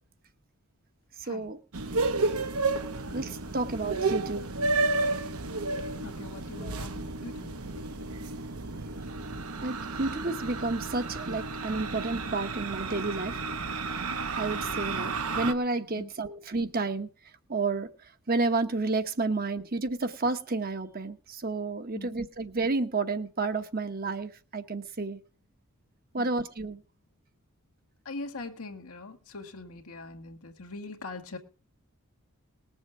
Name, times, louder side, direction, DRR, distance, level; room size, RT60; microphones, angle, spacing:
voice 1, 1.2-1.6 3.1-4.4 6.6-6.8 9.6-13.4 14.4-17.1 17.5-17.9 18.3-25.2 26.1-26.8, right 3 dB, 45° right, 1.0 m, -31 dB
sound 1, 1.7-15.5, right 3 dB, 85° right, 1.1 m, -32 dB
voice 2, 6.0-7.9 15.9-16.1 21.9-22.2 26.2-26.3 28.1-31.4, left 3 dB, 90° left, 1.9 m, -42 dB
20.0 x 7.2 x 4.7 m
head